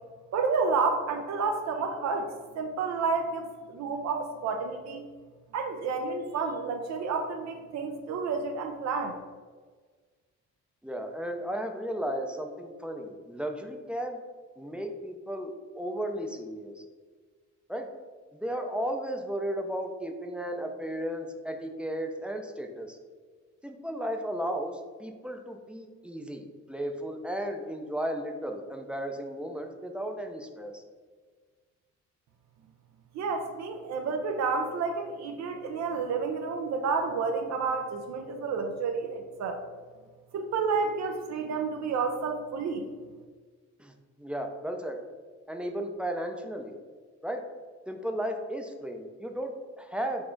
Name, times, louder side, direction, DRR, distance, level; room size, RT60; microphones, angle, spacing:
voice 1, 0.3-5.0 5.5-9.2 33.1-39.6 40.3-42.8, right 4 dB, 65° right, 4 dB, 0.5 m, -30 dB
voice 2, 10.8-14.2 14.6-16.8 17.7-17.9 18.3-23.0 23.6-30.8 43.8-45.0 45.5-46.8 47.2-47.4 47.9-50.2, equal, 5° right, 4 dB, 0.4 m, -34 dB
4.3 x 2.4 x 4.4 m, 1.5 s
cardioid pair, 90°, 30 cm